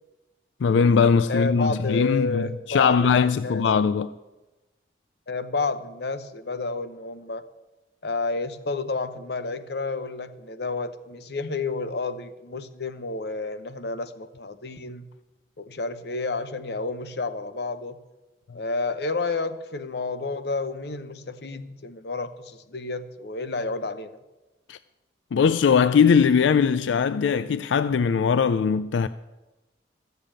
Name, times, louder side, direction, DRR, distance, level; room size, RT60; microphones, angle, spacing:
voice 1, 0.6-4.1 24.7-24.8 25.3-29.1, left 6 dB, 85° left, 0.4 m, -20 dB
voice 2, 1.3-3.6 5.3-7.4 8.0-15.1 15.6-18.0 18.5-24.2, left 3 dB, 65° left, 0.8 m, -30 dB
15.0 x 6.9 x 8.9 m
head